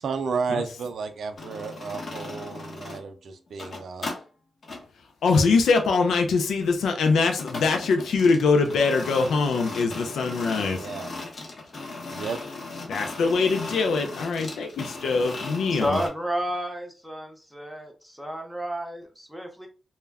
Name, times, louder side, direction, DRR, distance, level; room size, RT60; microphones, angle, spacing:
voice 1, 0.0-4.1 10.8-11.2 12.1-12.4, right 5 dB, 75° right, 0.4 m, -32 dB
sound 1, 1.4-3.1 3.5-4.2 4.6-4.8 7.0-16.1, left 3 dB, 60° left, 0.8 m, -37 dB
voice 2, 5.2-10.9 12.9-16.0, left 4 dB, 90° left, 0.4 m, -23 dB
voice 3, 15.7-19.7, equal, ahead, 0.7 m, -31 dB
2.2 x 2.1 x 3.4 m
cardioid pair, 60°, 0 cm